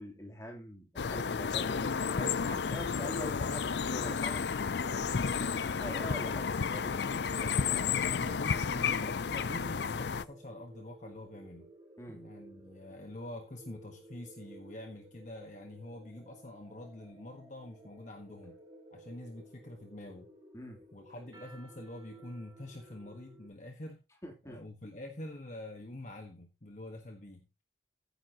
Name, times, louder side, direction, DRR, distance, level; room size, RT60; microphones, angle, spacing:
voice 1, 0.0-1.9 2.2-8.1 12.0-12.2 20.5-20.8 24.2-24.6, left 1 dB, 15° left, 1 dB, 3.0 m, -45 dB
sound 1, 1.0-10.2, left 6 dB, 70° left, 0.5 m, -32 dB
sound 2, 5.8-23.5, right 1 dB, 25° right, 2.5 m, -55 dB
voice 2, 8.1-11.7 12.1-18.6 18.9-20.3 20.9-24.0 24.5-27.5, left 1 dB, 40° left, 4 dB, 1.3 m, -46 dB
15.0 x 9.6 x 2.9 m, 0.27 s
head